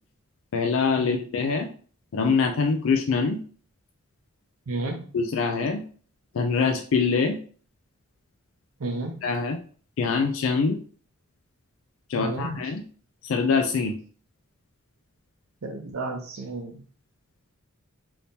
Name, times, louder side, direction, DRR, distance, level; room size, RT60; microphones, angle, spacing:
voice 1, 0.5-1.7 2.1-3.4 5.1-5.8 6.3-7.4 9.2-9.6 10.0-10.8 12.1-12.8 13.2-14.0, left 5 dB, 70° left, 5 dB, 0.4 m, -24 dB
voice 2, 4.7-5.1 8.8-9.2 12.2-12.5 15.6-16.7, right 2 dB, 85° right, 1 dB, 0.6 m, -32 dB
3.5 x 2.8 x 2.7 m, 0.43 s
head